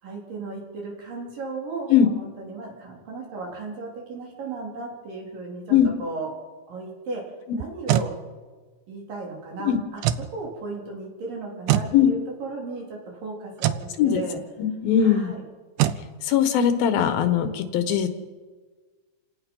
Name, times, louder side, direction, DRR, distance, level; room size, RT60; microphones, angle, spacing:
voice 1, 0.0-6.3 6.7-7.2 7.5-8.1 8.9-10.0 10.3-14.4 15.0-15.4, right 3 dB, 70° right, -1 dB, 5.4 m, -35 dB
sound 1, 7.6-8.1 10.0-10.3 11.7-11.9 13.6-13.9 15.8-16.0, right 12 dB, 85° right, 2.6 m, -22 dB
voice 2, 14.6-15.3 16.2-18.1, left 9 dB, 85° left, 8 dB, 3.3 m, -20 dB
29.0 x 17.5 x 5.6 m, 1.4 s
omnidirectional pair, 4.1 m